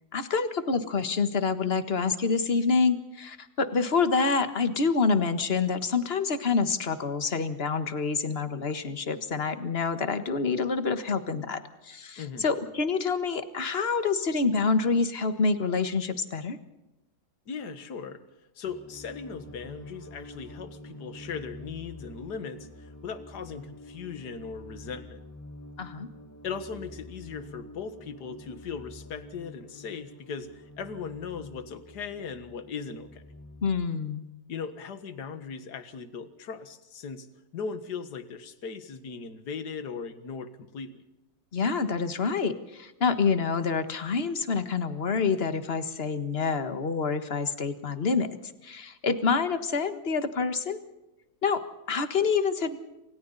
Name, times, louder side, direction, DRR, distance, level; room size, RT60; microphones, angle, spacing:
voice 1, 0.1-16.6 25.8-26.1 33.6-34.3 41.5-48.4 48.6-50.8 51.4-52.8, left 4 dB, 35° left, 10 dB, 1.6 m, -27 dB
voice 2, 12.2-12.5 17.5-18.2 18.6-25.2 26.4-33.2 34.5-37.3 37.5-41.0, left 6 dB, 60° left, 10 dB, 2.1 m, -38 dB
sound 1, 18.6-33.9, left 1 dB, 10° left, 1.1 m, -47 dB
28.5 x 27.0 x 4.1 m, 0.98 s
omnidirectional pair, 2.0 m